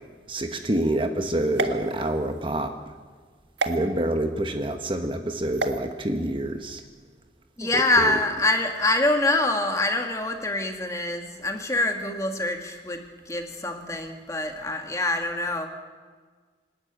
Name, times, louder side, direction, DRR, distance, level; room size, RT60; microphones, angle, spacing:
voice 1, 0.3-2.7 3.7-6.8 7.6-8.2, right 1 dB, 30° right, 6 dB, 1.1 m, -27 dB
sound 1, 1.5-2.5 3.6-3.8 5.5-5.8, right 4 dB, 85° right, 1.7 m, -30 dB
voice 2, 7.6-15.7, left 2 dB, 20° left, 4 dB, 1.9 m, -25 dB
26.5 x 11.5 x 9.2 m, 1.5 s
head